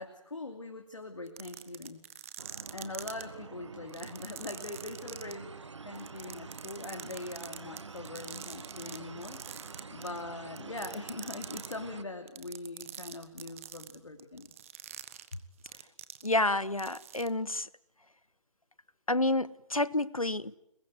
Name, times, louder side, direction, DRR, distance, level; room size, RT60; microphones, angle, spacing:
voice 1, 0.0-2.0 2.7-9.4 9.9-14.5, left 2 dB, 65° left, 2.8 m, -42 dB
sound 1, 1.3-3.2 3.9-5.3 6.0-9.0 9.2-10.2 10.6-11.7 12.3-16.5 16.8-17.3, right 10 dB, 25° right, 1.3 m, -44 dB
sound 2, 2.4-12.0, right 4 dB, 60° right, 1.1 m, -47 dB
voice 2, 16.2-17.7 19.1-20.6, left 2 dB, 85° left, 1.1 m, -29 dB
30.0 x 21.0 x 9.4 m
figure-of-eight pair, 145°, 18 cm